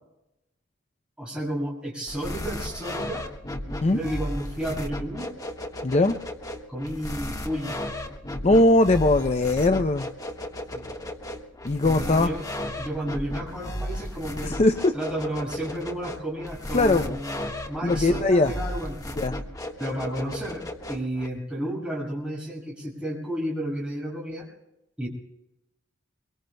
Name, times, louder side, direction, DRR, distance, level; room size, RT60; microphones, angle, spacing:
voice 1, 1.2-3.2 3.9-5.3 6.7-7.8 10.7-10.9 11.8-12.5 12.8-14.5 14.9-19.2 19.8-20.6 20.9-24.5 25.0-25.1, right 1 dB, 5° right, -3 dB, 6.5 m, -32 dB
sound 1, 2.1-21.3, left 1 dB, 20° left, 1.5 m, -35 dB
voice 2, 5.8-6.2 8.4-10.1 11.6-12.3 14.4-14.9 16.7-17.2 17.8-18.5 19.2-19.3, left 2 dB, 35° left, 7 dB, 0.6 m, -20 dB
24.5 x 24.0 x 2.3 m, 0.90 s
head